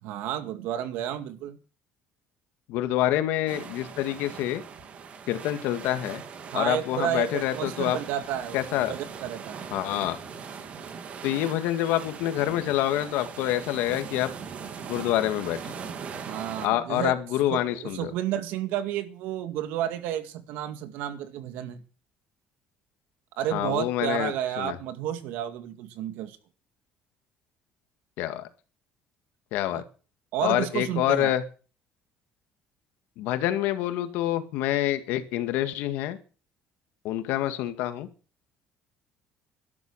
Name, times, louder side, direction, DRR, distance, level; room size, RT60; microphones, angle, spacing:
voice 1, 0.0-1.6 6.5-9.7 16.2-17.2 17.5-21.8 23.4-26.4 29.7-29.8 30.3-31.3, right 11 dB, 85° right, 2.1 m, -31 dB
voice 2, 2.7-4.6 5.3-6.2 6.5-8.0 8.5-8.9 9.7-10.2 11.2-14.3 14.9-15.6 16.6-18.1 23.5-24.8 28.2-28.5 29.5-29.8 30.4-31.4 33.2-36.2 37.0-38.1, left 13 dB, 85° left, 2.1 m, -27 dB
sound 1, 3.5-16.7, right 6 dB, 40° right, 2.3 m, -40 dB
12.5 x 12.0 x 6.5 m
cardioid pair, 140°, 3 cm